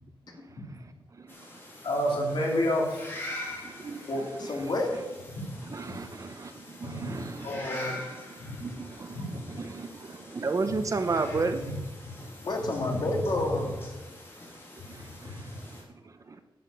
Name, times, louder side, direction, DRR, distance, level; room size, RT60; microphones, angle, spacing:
voice 1, 0.3-0.7 3.6-4.7 5.7-6.0 6.5-7.6 8.3-11.7 14.8-16.4, right 3 dB, 40° right, 9 dB, 0.7 m, -34 dB
sound 1, 1.3-15.8, left 1 dB, 25° left, 2.7 m, -45 dB
voice 2, 1.8-3.2 5.3-5.5 6.9-7.1 7.4-7.9 8.4-8.6 9.1-9.2 11.6-11.7 12.9-13.0 15.2-15.5, left 1 dB, 75° left, -3 dB, 3.5 m, -30 dB
voice 3, 4.1-5.0 12.4-13.7, left 2 dB, 55° left, 1 dB, 2.5 m, -29 dB
11.0 x 8.2 x 5.3 m, 1.1 s
wide cardioid pair, 140°, 9 cm